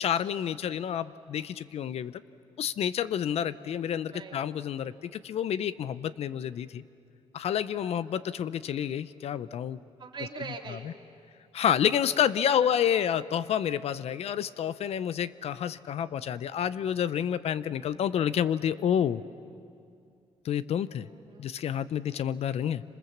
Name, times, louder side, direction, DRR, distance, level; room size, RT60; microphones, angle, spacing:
voice 1, 0.0-2.2 2.6-6.8 7.3-9.8 10.7-10.8 11.5-19.2 20.4-21.1 21.4-22.8, left 9 dB, 65° left, 16 dB, 0.6 m, -29 dB
voice 2, 10.0-10.9 12.5-12.8 21.0-21.6, right 5 dB, 45° right, 3 dB, 2.4 m, -42 dB
28.5 x 26.5 x 7.3 m, 2.4 s
cardioid pair, 130°, 11 cm